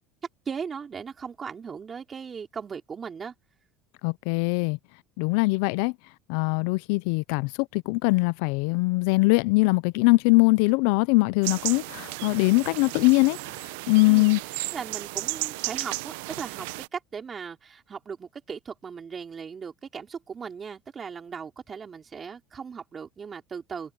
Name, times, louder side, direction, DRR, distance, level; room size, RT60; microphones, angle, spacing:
voice 1, 0.4-3.3 14.0-14.3 14.7-23.9, right 6 dB, 25° right, 4.8 m, -38 dB
voice 2, 4.0-4.8 5.2-5.9 6.3-14.4, left 25 dB, 75° left, 0.4 m, -22 dB
sound 1, 11.4-16.9, right 21 dB, 85° right, 0.7 m, -34 dB
supercardioid pair, 130°, 0 cm